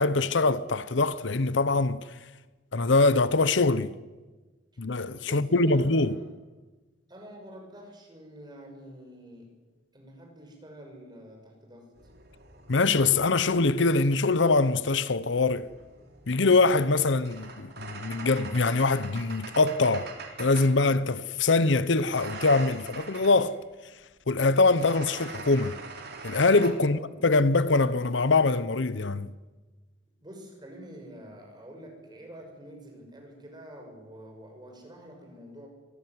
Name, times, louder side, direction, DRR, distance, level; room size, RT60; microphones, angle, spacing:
voice 1, 0.0-2.0 2.7-3.9 4.8-6.1 12.7-15.7 16.3-20.1 20.4-23.6 24.3-25.7 26.2-29.3, left 3 dB, 70° left, 0.8 m, -23 dB
voice 2, 5.2-6.3 7.1-9.5 9.9-11.9 26.8-27.2 30.2-35.7, equal, 20° right, 6.6 m, -47 dB
sound 1, 11.9-14.1 15.3-20.8 22.0-23.5 24.6-26.7, right 4 dB, 55° right, 3.8 m, -43 dB
24.5 x 16.0 x 9.6 m
head